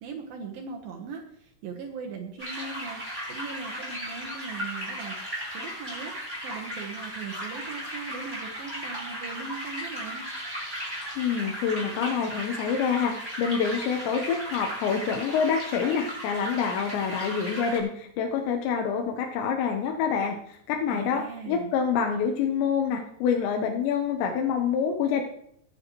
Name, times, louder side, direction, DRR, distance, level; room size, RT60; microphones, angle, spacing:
voice 1, 0.0-3.0 3.3-5.2 5.5-6.1 6.4-10.2 20.9-21.7, right 5 dB, 70° right, 1 dB, 2.6 m, -39 dB
sound 1, 2.4-17.8, equal, 5° left, 6.4 m, -36 dB
voice 2, 11.2-25.2, left 6 dB, 80° left, 2 dB, 3.2 m, -27 dB
22.5 x 9.1 x 3.1 m, 0.71 s
omnidirectional pair, 5.1 m